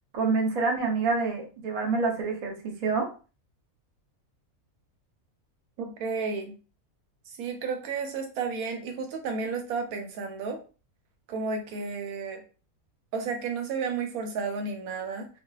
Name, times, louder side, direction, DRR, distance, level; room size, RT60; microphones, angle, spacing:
voice 1, 0.1-3.1, right 4 dB, 65° right, 0 dB, 0.3 m, -27 dB
voice 2, 5.8-6.5 7.3-10.6 11.3-12.4 13.1-15.3, right 5 dB, 90° right, 4 dB, 1.1 m, -32 dB
2.5 x 2.3 x 2.3 m, 0.36 s
omnidirectional pair, 1.5 m